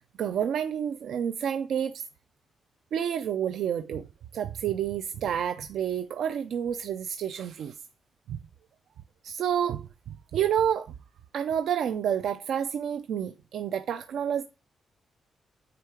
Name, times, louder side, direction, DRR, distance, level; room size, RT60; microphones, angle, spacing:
voice 1, 0.2-2.0 2.9-4.1 4.3-7.8 8.3-8.4 9.2-9.9 10.3-10.9 11.3-14.4, right 9 dB, 70° right, 0.5 m, -29 dB
9.2 x 3.8 x 4.7 m
wide cardioid pair, 175°, 0 cm